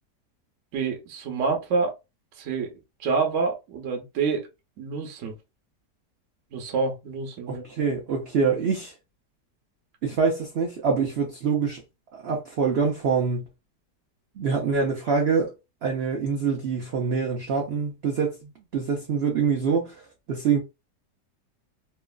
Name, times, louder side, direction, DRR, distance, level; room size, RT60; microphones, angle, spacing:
voice 1, 0.7-1.9 2.4-2.7 3.0-4.5 4.8-5.3 6.5-7.6, right 4 dB, 60° right, 0.9 m, -27 dB
voice 2, 7.5-8.9 10.0-11.8 12.1-13.5 14.4-15.5 15.8-19.9 20.3-20.6, right 5 dB, 90° right, 0.5 m, -25 dB
2.9 x 2.4 x 2.2 m
omnidirectional pair, 1.8 m